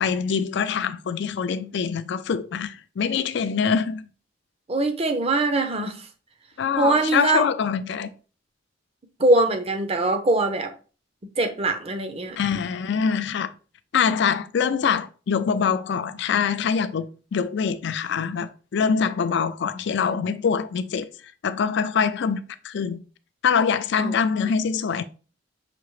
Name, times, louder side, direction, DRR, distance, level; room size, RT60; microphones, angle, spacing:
voice 1, 0.0-4.1 6.6-8.1 12.4-13.5 13.9-21.1 21.4-23.0 23.4-25.0, left 6 dB, 60° left, 0.4 m, -24 dB
voice 2, 4.7-6.1 6.8-7.5 9.2-10.7 11.4-12.4 24.0-24.1, right 2 dB, 30° right, 0.6 m, -22 dB
5.8 x 2.8 x 3.1 m
head